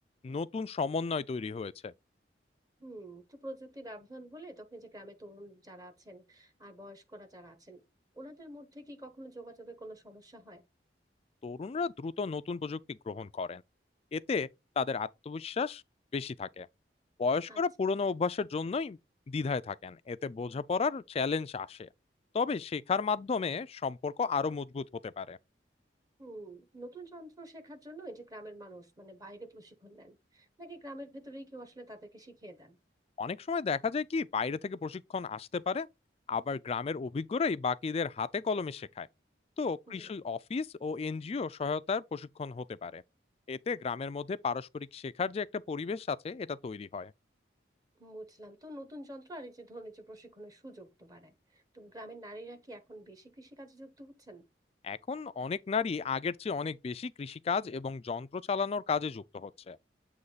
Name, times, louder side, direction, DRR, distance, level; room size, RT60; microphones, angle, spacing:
voice 1, 0.2-1.9 11.4-13.6 14.1-14.5 14.8-15.8 16.1-16.7 17.2-19.0 19.3-21.9 22.3-25.4 33.2-35.9 36.3-39.1 39.6-43.0 43.5-47.1 54.8-59.8, left 5 dB, 35° left, 0.3 m, -33 dB
voice 2, 2.8-7.8 8.1-10.6 17.5-17.6 26.2-32.8 39.9-40.1 48.0-54.4, right 1 dB, 20° right, 1.1 m, -47 dB
7.8 x 3.1 x 4.0 m
head